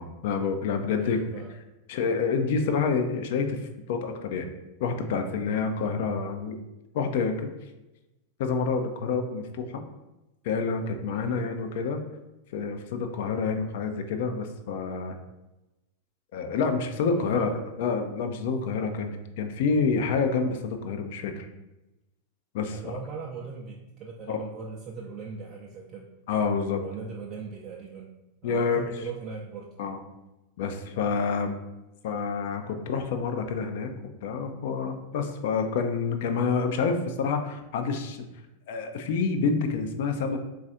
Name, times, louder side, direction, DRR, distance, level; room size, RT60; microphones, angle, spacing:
voice 1, 0.0-1.2 1.9-4.5 4.8-6.6 6.9-7.5 8.4-9.8 10.4-12.0 12.5-15.2 16.3-17.5 17.8-21.5 22.5-22.9 24.3-24.4 26.3-26.8 28.4-28.8 29.8-30.0 30.6-31.6 32.0-33.9 34.2-38.3 38.7-40.4, left 5 dB, 50° left, 6 dB, 0.4 m, -28 dB
voice 2, 0.9-1.5 11.1-11.4 17.0-17.9 22.7-26.1 26.8-28.1 28.4-29.7, right 4 dB, 35° right, -2 dB, 0.5 m, -39 dB
3.9 x 2.4 x 3.9 m, 0.99 s
figure-of-eight pair, 90°, 0 cm